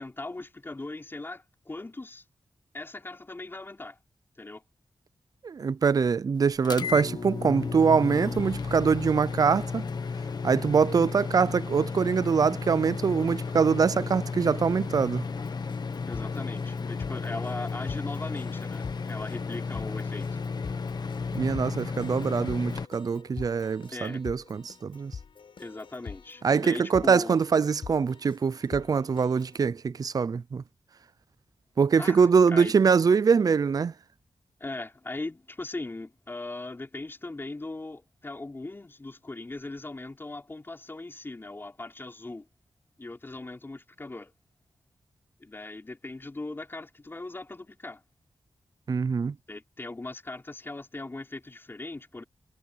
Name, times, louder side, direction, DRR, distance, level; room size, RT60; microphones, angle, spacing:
voice 1, 0.0-2.2 2.7-4.0 4.4-4.6 16.0-20.4 23.9-24.2 25.6-27.5 32.0-32.7 34.6-42.5 43.0-44.3 45.4-48.0 49.5-52.2, left 2 dB, 25° left, 4.3 m, -39 dB
voice 2, 5.4-9.9 10.4-15.2 21.3-25.1 26.4-30.6 31.8-33.9 48.9-49.3, right 5 dB, 45° right, 0.4 m, -24 dB
sound 1, 6.6-22.9, left 5 dB, 50° left, 1.3 m, -33 dB
Keyboard (musical), 15.3-29.7, left 6 dB, 70° left, 7.8 m, -46 dB
wide cardioid pair, 125°, 9 cm